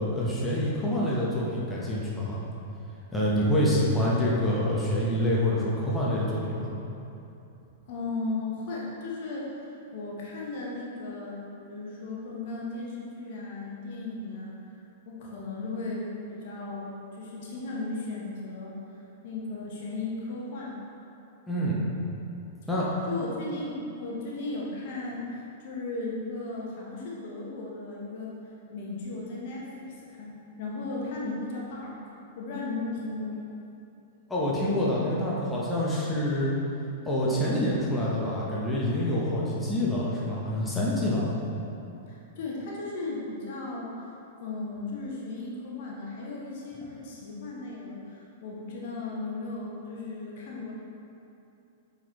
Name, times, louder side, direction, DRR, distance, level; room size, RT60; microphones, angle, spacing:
voice 1, 0.0-2.4 3.1-6.7 21.5-21.8 22.7-23.0 34.3-36.5 37.0-41.3, left 1 dB, 5° left, -7 dB, 1.1 m, -26 dB
voice 2, 7.9-11.4 11.7-14.8 15.1-16.9 17.2-19.0 19.2-20.8 21.6-21.7 23.1-28.3 28.7-32.0 32.4-33.4 42.1-44.1 44.4-50.7, left 3 dB, 50° left, -4 dB, 1.2 m, -36 dB
8.2 x 4.1 x 3.1 m, 2.8 s
figure-of-eight pair, 100°, 0 cm